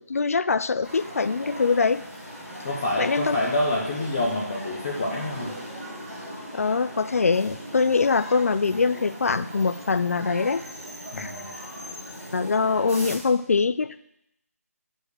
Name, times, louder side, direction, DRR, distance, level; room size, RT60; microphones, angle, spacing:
voice 1, 0.0-2.0 3.0-3.4 6.5-10.6 11.2-11.3 12.3-14.0, left 4 dB, 65° left, 14 dB, 0.4 m, -23 dB
sound 1, 0.8-13.2, equal, 5° right, 1.5 m, -39 dB
voice 2, 2.6-5.5 11.1-11.5, left 1 dB, 20° left, -3 dB, 0.6 m, -27 dB
6.5 x 5.1 x 6.6 m, 0.79 s
figure-of-eight pair, 175°, 8 cm